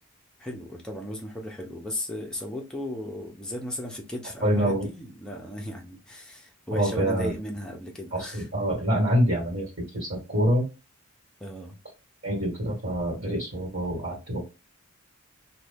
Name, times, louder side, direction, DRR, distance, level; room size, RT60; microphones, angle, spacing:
voice 1, 0.4-8.5 11.4-11.8, left 1 dB, 5° left, 0.6 m, -36 dB
voice 2, 4.4-4.9 6.7-7.3 8.1-9.6 9.9-10.7 12.2-14.4, equal, 55° right, 1.7 m, -26 dB
2.6 x 2.6 x 3.4 m
head